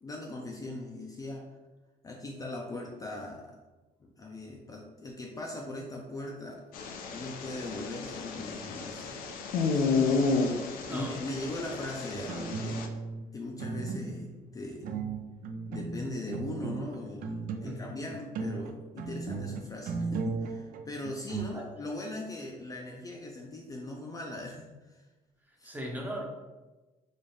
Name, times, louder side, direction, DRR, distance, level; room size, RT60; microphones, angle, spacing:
voice 1, 0.0-1.5 2.0-3.6 4.0-6.6 7.1-9.2 9.7-9.9 10.3-10.5 10.9-12.8 13.3-14.9 15.7-25.0 25.6-25.8, left 2 dB, 25° left, 0 dB, 0.4 m, -40 dB
sound 1, 6.7-12.9, left 4 dB, 90° left, 0.5 m, -31 dB
voice 2, 10.6-11.2 17.6-18.0 19.4-19.5 21.5-21.7 25.6-26.2, equal, 10° right, 0 dB, 0.6 m, -38 dB
sound 2, 12.1-13.2 13.6-14.4 14.8-17.8 18.1-21.5, right 4 dB, 75° right, 0.4 m, -36 dB
4.2 x 2.4 x 3.2 m, 1.2 s
cardioid pair, 140°, 14 cm